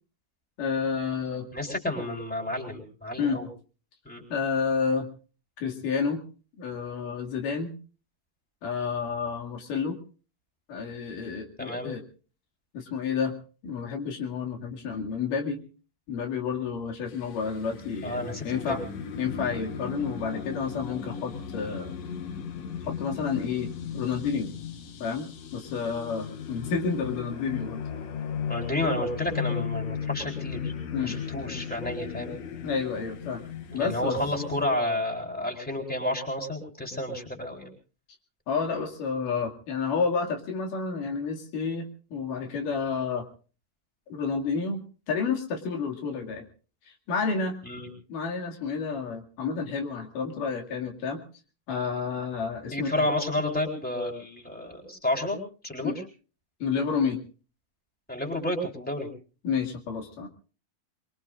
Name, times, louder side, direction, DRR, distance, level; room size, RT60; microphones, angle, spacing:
voice 1, 0.6-1.5 3.2-3.4 4.3-5.1 5.6-6.2 6.6-7.7 8.6-10.0 10.7-12.0 12.7-13.4 13.6-15.6 16.1-18.8 19.2-21.9 22.8-23.7 23.9-24.5 25.0-27.8 30.9-31.2 32.6-33.4 33.7-34.2 38.5-43.3 44.1-46.4 46.9-47.6 48.1-51.2 51.7-53.1 55.8-56.0 56.6-57.2 59.4-60.3, left 5 dB, 90° left, 3 dB, 3.9 m, -30 dB
voice 2, 1.5-3.5 4.1-4.2 11.6-11.9 18.0-18.8 28.5-30.7 31.0-32.4 33.7-37.7 47.6-47.9 52.7-55.9 58.1-59.1, left 1 dB, 5° left, 1 dB, 3.8 m, -31 dB
sound 1, 17.1-34.6, left 7 dB, 60° left, 2.2 m, -36 dB
24.0 x 23.5 x 2.5 m, 0.37 s
omnidirectional pair, 3.6 m